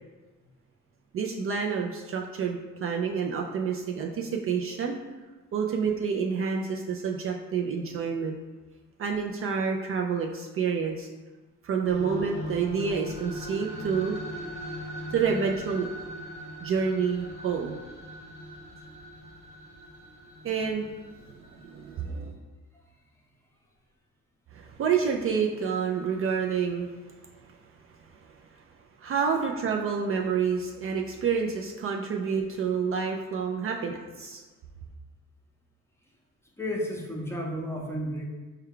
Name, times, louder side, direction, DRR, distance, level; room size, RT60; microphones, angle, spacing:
voice 1, 1.1-5.0 5.5-8.4 9.0-11.1 11.6-14.2 15.1-15.9 16.6-17.8 20.4-21.0 21.3-22.4 24.5-27.1 27.4-27.5 29.0-34.4, right 6 dB, 45° right, 1 dB, 0.4 m, -28 dB
sound 1, 11.8-22.0, equal, 20° right, 1.0 m, -39 dB
voice 2, 36.6-38.2, equal, 10° left, -2 dB, 0.7 m, -32 dB
4.4 x 2.2 x 3.6 m, 1.3 s
cardioid pair, 90°, 30 cm